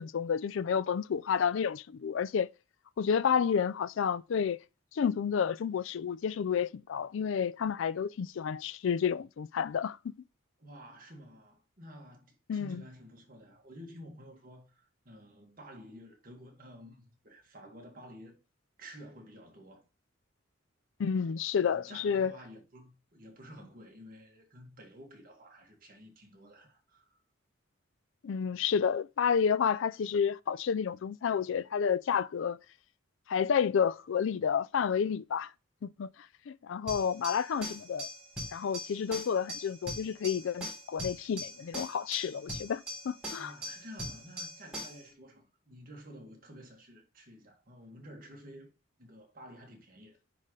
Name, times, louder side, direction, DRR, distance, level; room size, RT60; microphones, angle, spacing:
voice 1, 0.0-2.5 3.0-4.6 4.9-10.1 12.5-12.8 21.0-22.3 28.2-32.6 33.3-35.5 35.8-36.1 36.5-38.1 38.5-43.5, left 7 dB, 70° left, 0.4 m, -30 dB
voice 2, 10.6-18.4 18.8-19.8 21.6-27.2 43.4-48.7 49.0-50.2, equal, 45° right, 1.9 m, -51 dB
sound 1, 36.9-45.1, equal, 5° right, 3.5 m, -41 dB
9.8 x 3.8 x 3.2 m
head